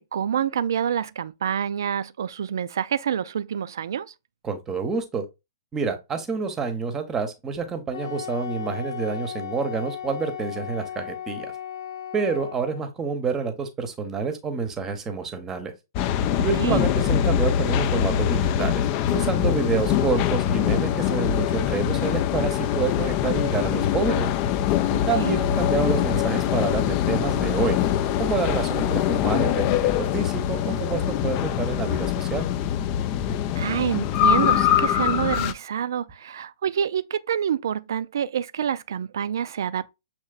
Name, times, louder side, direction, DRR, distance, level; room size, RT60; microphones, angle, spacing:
voice 1, 0.0-4.1 16.3-16.8 24.9-25.4 33.6-39.9, right 8 dB, 60° right, 0.3 m, -27 dB
voice 2, 4.4-5.3 5.7-11.5 12.1-15.7 16.4-24.3 25.1-27.8 28.2-32.5, right 5 dB, 15° right, 0.8 m, -28 dB
Wind instrument woodwind instrument, 7.9-12.8, left 9 dB, 80° left, 0.8 m, -36 dB
sound 1, 15.9-35.5, left 10 dB, 35° left, 0.4 m, -23 dB
6.6 x 3.0 x 2.4 m
figure-of-eight pair, 120°, 2 cm